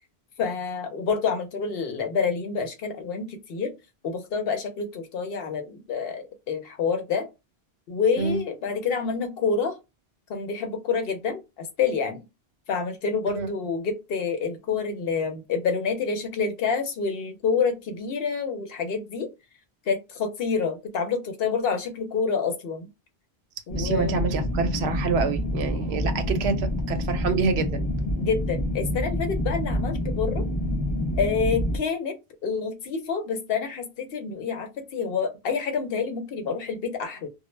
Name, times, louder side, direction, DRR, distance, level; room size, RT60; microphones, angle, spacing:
voice 1, 0.4-3.7 4.0-7.3 7.9-9.8 10.3-12.2 12.7-19.3 19.9-22.9 23.7-24.2 28.2-30.4 31.2-32.2 32.4-37.3, left 5 dB, 70° left, 0.8 m, -28 dB
sound 1, 23.7-31.8, left 1 dB, 35° left, 0.5 m, -27 dB
voice 2, 23.8-27.9, right 4 dB, 80° right, 0.8 m, -27 dB
2.1 x 2.0 x 3.0 m
omnidirectional pair, 1.1 m